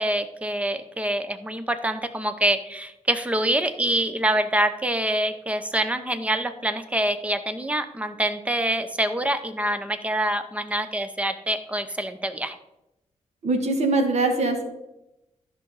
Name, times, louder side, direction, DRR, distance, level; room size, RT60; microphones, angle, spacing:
voice 1, 0.0-12.6, right 1 dB, 10° right, 10 dB, 0.7 m, -25 dB
voice 2, 13.4-14.7, right 2 dB, 60° right, 5 dB, 1.6 m, -22 dB
13.5 x 6.1 x 4.0 m, 0.91 s
wide cardioid pair, 155°, 13 cm